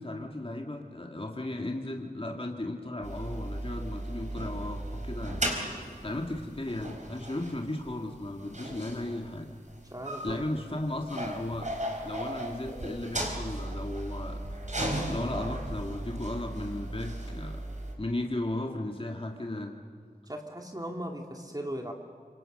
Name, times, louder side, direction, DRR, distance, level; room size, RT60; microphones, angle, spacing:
voice 1, 0.0-5.4 6.0-9.5 10.2-11.7 12.0-14.4 14.8-17.6 18.0-19.7, left 1 dB, 35° left, 2 dB, 2.2 m, -35 dB
sound 1, 3.0-17.9, right 1 dB, 50° right, 4.5 m, -36 dB
voice 2, 9.9-10.8 20.3-21.9, equal, 25° right, 2 dB, 2.4 m, -38 dB
27.0 x 25.0 x 6.7 m, 2.1 s
wide cardioid pair, 50°, 16 cm